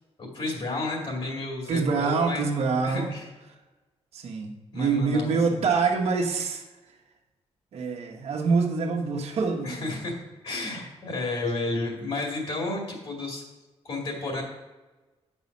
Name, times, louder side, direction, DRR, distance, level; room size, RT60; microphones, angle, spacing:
voice 1, 0.2-2.5 2.8-3.3 4.7-5.6 9.6-13.4 13.8-14.4, left 2 dB, 55° left, 0 dB, 2.4 m, -32 dB
voice 2, 1.7-3.2 4.1-7.0 7.7-10.0, right 4 dB, 70° right, 0 dB, 1.2 m, -26 dB
9.6 x 5.5 x 5.3 m, 1.1 s
wide cardioid pair, 160°, 11 cm